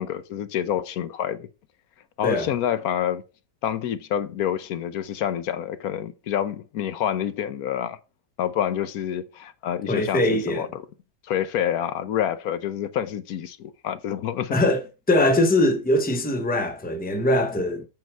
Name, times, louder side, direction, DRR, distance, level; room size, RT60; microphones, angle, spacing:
voice 1, 0.0-1.5 2.2-3.2 3.6-8.0 8.4-10.8 11.2-14.6, left 10 dB, 80° left, 1.2 m, -27 dB
voice 2, 9.9-10.7 14.5-14.8 15.1-17.9, left 1 dB, 10° left, 0.8 m, -22 dB
7.9 x 5.0 x 4.4 m
omnidirectional pair, 1.6 m